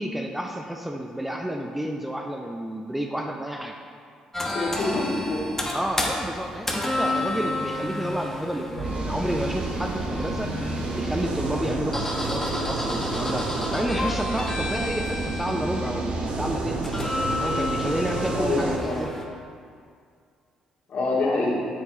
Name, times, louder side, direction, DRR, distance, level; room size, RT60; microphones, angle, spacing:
voice 1, 0.0-3.8 5.7-10.5 10.9-16.8 17.4-19.2, equal, 5° right, 2 dB, 0.6 m, -30 dB
sound 1, 4.3-19.2, left 1 dB, 15° left, 1.2 m, -31 dB
voice 2, 4.5-5.5 18.3-19.0 20.9-21.5, left 3 dB, 50° left, -5 dB, 2.1 m, -26 dB
sound 2, 8.8-18.8, right 3 dB, 50° right, 1.0 m, -30 dB
9.0 x 7.7 x 3.0 m, 2.2 s
figure-of-eight pair, 45°, 3 cm